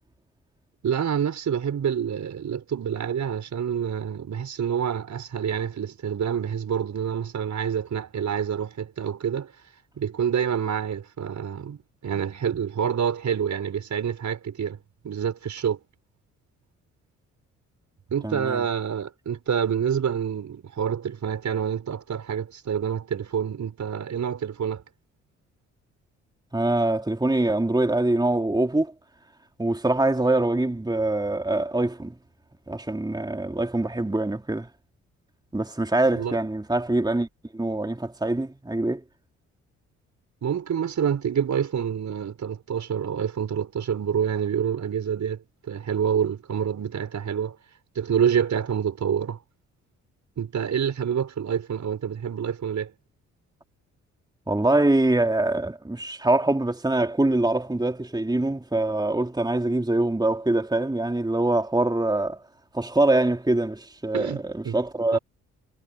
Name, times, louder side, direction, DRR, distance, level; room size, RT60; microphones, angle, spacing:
voice 1, 0.8-9.5 10.0-14.8 15.0-15.8 18.1-24.8 36.1-36.4 40.4-47.6 47.9-49.4 50.4-52.9 64.1-64.8 65.1-65.2, right 8 dB, 50° right, 5.1 m, -27 dB
voice 2, 18.2-18.6 26.5-28.9 29.6-32.1 32.7-34.7 35.5-37.3 37.5-39.0 54.5-62.4 62.7-65.2, right 2 dB, 10° right, 3.1 m, -24 dB
hypercardioid pair, 45°, 36 cm